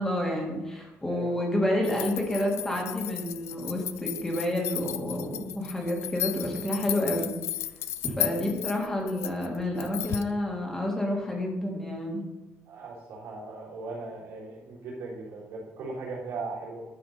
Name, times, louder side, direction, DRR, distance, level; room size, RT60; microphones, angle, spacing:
voice 1, 0.0-7.3 8.0-12.2, left 1 dB, 10° left, -1 dB, 1.7 m, -29 dB
sound 1, 1.8-10.3, left 12 dB, 60° left, 0.4 m, -35 dB
voice 2, 12.7-16.8, right 3 dB, 90° right, -5 dB, 3.5 m, -38 dB
11.5 x 4.9 x 5.5 m, 1.0 s
cardioid pair, 175°, 5 cm